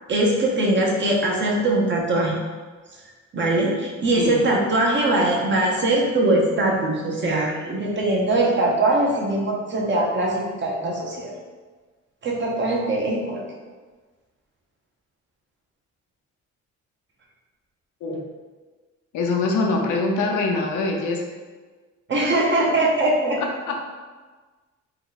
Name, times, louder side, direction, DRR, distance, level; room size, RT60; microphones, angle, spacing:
voice 1, 0.1-2.4 3.3-11.3 12.2-13.4 22.1-23.4, right 2 dB, 40° right, -1 dB, 0.7 m, -21 dB
voice 2, 4.2-4.5 18.0-18.2 19.1-21.2 23.7-23.8, left 3 dB, 80° left, 1 dB, 0.6 m, -23 dB
2.8 x 2.3 x 3.9 m, 1.4 s
cardioid pair, 90°, 30 cm